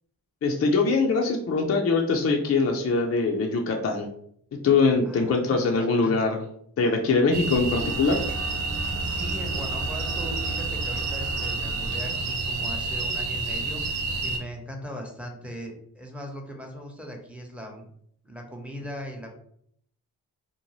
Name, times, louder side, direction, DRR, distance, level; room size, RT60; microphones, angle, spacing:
voice 1, 0.4-4.1 4.6-6.4 6.8-8.2, left 4 dB, 35° left, 1 dB, 0.5 m, -23 dB
voice 2, 5.1-6.2 9.0-17.9 18.2-19.3, equal, 5° right, 1 dB, 0.9 m, -39 dB
sound 1, 7.3-14.4, right 3 dB, 90° right, 0.6 m, -29 dB
sound 2, 7.6-13.6, right 2 dB, 35° right, 0.8 m, -38 dB
2.6 x 2.2 x 3.0 m, 0.66 s
supercardioid pair, 50°, 39 cm